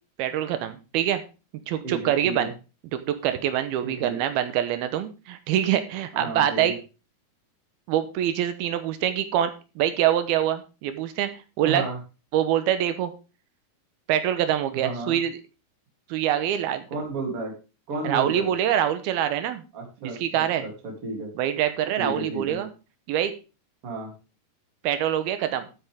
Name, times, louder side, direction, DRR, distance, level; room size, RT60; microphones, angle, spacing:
voice 1, 0.2-1.2 1.7-2.5 2.9-6.8 7.9-11.3 11.6-11.9 12.3-13.1 14.1-15.4 16.1-16.8 18.0-19.6 20.0-20.6 21.4-22.7 23.1-23.3 24.8-25.7, right 10 dB, 75° right, 10 dB, 2.7 m, -25 dB
voice 2, 1.8-2.5 3.8-4.2 6.1-6.8 11.6-12.0 14.8-15.2 16.9-17.5 17.9-18.5 19.7-21.3 22.0-22.6 23.8-24.1, right 3 dB, 35° right, 0 dB, 3.8 m, -32 dB
12.5 x 8.9 x 3.6 m, 0.31 s
omnidirectional pair, 4.8 m